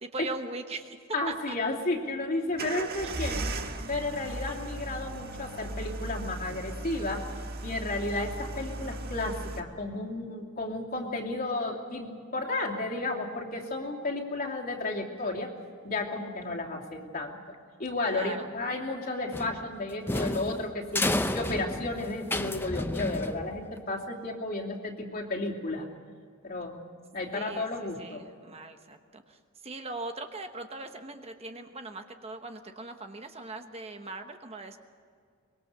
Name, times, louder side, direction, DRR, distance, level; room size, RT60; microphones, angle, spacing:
voice 1, 0.0-1.0 1.3-1.6 3.0-3.1 18.0-18.5 27.3-34.8, right 2 dB, 30° right, 6 dB, 1.0 m, -40 dB
voice 2, 1.1-3.4 3.9-7.3 7.6-15.5 15.8-17.4 17.8-21.0 21.3-25.9 26.4-26.8 27.1-28.2, left 2 dB, 45° left, -1 dB, 2.8 m, -33 dB
sound 1, 2.6-9.6, right 2 dB, 45° right, 1.5 m, -37 dB
sound 2, 19.3-23.8, left 1 dB, 10° left, 0.7 m, -31 dB
24.0 x 22.0 x 6.7 m, 2.1 s
head